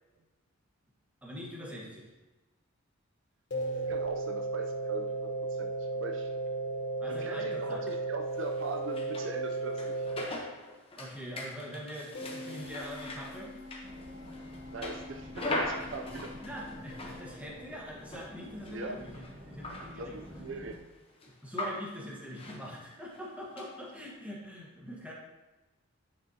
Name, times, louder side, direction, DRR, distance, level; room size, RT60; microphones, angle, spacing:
voice 1, 1.2-2.1 7.0-7.9 11.0-13.8 16.4-20.2 21.4-25.1, equal, 5° right, -4 dB, 1.4 m, -43 dB
sound 1, 3.5-10.3 12.1-17.3, right 2 dB, 55° left, 1.1 m, -36 dB
voice 2, 3.9-6.3 7.1-10.1 14.7-16.3 18.7-19.0 20.0-20.8, right 3 dB, 60° right, 5 dB, 0.5 m, -41 dB
sound 2, 8.3-9.4 9.7-17.3 18.0-20.4 20.7-20.8 21.2-22.0 22.3-22.7 23.1-23.2 23.6-24.0, left 1 dB, 25° left, 0.9 m, -41 dB
sound 3, 13.8-20.7, equal, 35° right, 1.8 m, -49 dB
9.7 x 6.5 x 2.9 m, 1.1 s
head